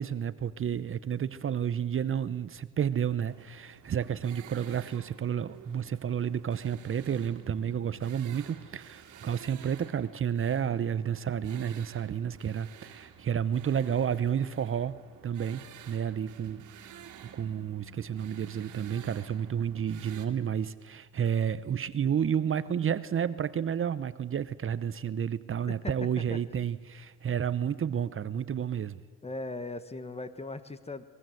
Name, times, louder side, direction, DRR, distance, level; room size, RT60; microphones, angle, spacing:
voice 1, 0.0-15.0 15.2-29.0, right 8 dB, 45° right, 15 dB, 0.9 m, -31 dB
sound 1, 3.3-20.3, right 9 dB, 80° right, 2.3 m, -52 dB
voice 2, 25.7-26.4 29.2-31.2, left 2 dB, 20° left, 13 dB, 1.4 m, -39 dB
22.5 x 21.5 x 7.9 m, 1.5 s
cardioid pair, 90°, 30 cm